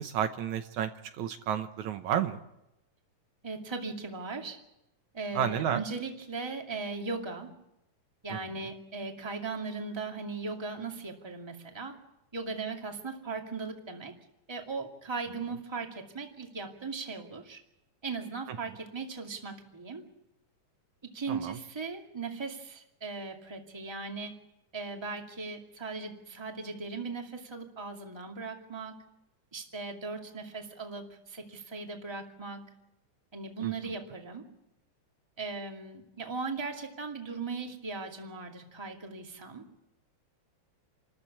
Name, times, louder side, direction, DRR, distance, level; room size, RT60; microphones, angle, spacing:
voice 1, 0.0-2.4 5.3-5.8 8.3-8.4 18.5-18.6 21.3-21.6 33.6-33.7, right 9 dB, 75° right, 8 dB, 2.2 m, -31 dB
voice 2, 3.4-4.6 5.1-7.5 8.2-12.0 12.3-14.1 14.5-17.6 18.0-20.0 21.1-24.3 24.7-28.9 29.5-32.6 33.3-34.4 35.4-39.7, right 4 dB, 10° right, 2 dB, 1.9 m, -38 dB
27.5 x 14.0 x 8.7 m, 0.88 s
omnidirectional pair, 3.6 m